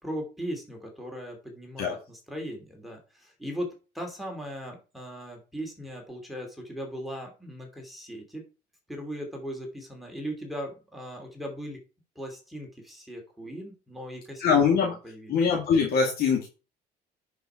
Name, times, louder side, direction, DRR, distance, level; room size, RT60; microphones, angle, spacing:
voice 1, 0.0-8.4 8.9-11.8 12.2-14.4 14.8-15.4, equal, ahead, 0 dB, 2.8 m, -38 dB
voice 2, 14.4-14.9 15.3-16.5, left 6 dB, 65° left, -1 dB, 2.5 m, -22 dB
10.5 x 5.2 x 4.5 m, 0.33 s
cardioid pair, 110°, 17 cm